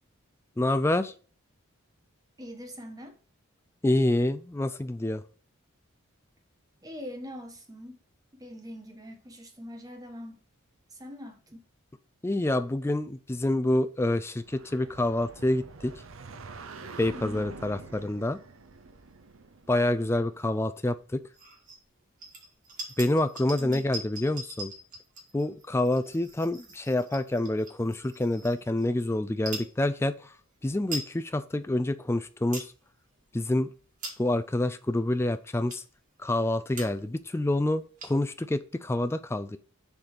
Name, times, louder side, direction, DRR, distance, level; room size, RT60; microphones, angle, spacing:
voice 1, 0.6-1.1 3.8-5.2 12.2-15.9 17.0-18.4 19.7-21.2 23.0-24.7 25.3-30.3 30.6-32.7 33.3-33.7 34.2-35.8 36.2-39.6, left 1 dB, 10° left, 0.3 m, -27 dB
voice 2, 2.4-3.2 6.8-8.0 8.3-10.4 10.9-11.7 17.1-17.5 23.5-24.0, equal, 15° right, 1.2 m, -43 dB
sound 1, 14.3-20.9, right 4 dB, 70° right, 0.7 m, -46 dB
sound 2, 21.3-21.8 22.2-28.9 29.3-29.7 30.3-30.4 30.7-31.1 31.6-31.7 32.2-32.7 33.2-33.4 33.8-34.4 35.0-35.1 35.7-36.0 36.5-36.6 36.7-37.1 37.4-37.5 37.7-38.4, right 2 dB, 35° right, 2.1 m, -42 dB
7.1 x 4.0 x 4.9 m
head